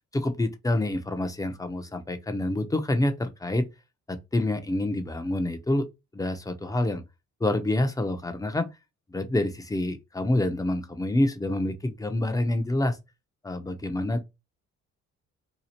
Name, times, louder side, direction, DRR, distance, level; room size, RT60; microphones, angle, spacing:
voice 1, 0.1-3.7 4.1-5.9 6.1-7.0 7.4-8.7 9.1-13.0 13.4-14.2, left 1 dB, 10° left, 0.6 m, -27 dB
2.9 x 2.4 x 4.2 m
cardioid pair, 75°, 30 cm